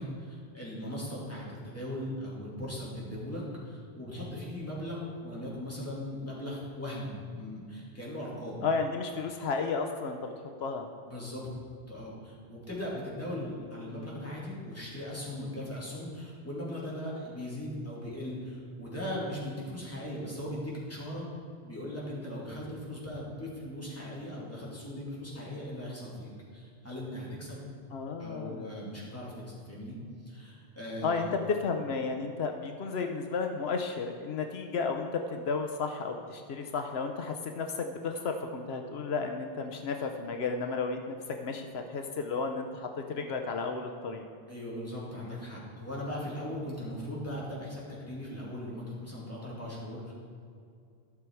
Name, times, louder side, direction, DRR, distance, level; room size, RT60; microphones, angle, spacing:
voice 1, 0.0-8.6 11.1-11.5 11.9-21.3 21.6-27.6 28.2-30.0 30.3-31.3 44.5-50.1, left 1 dB, 15° left, -6 dB, 2.6 m, -39 dB
voice 2, 8.6-10.3 10.6-10.8 27.9-28.7 31.0-41.2 41.4-44.2, left 4 dB, 80° left, 5 dB, 1.0 m, -33 dB
13.0 x 6.3 x 4.6 m, 2.4 s
omnidirectional pair, 1.0 m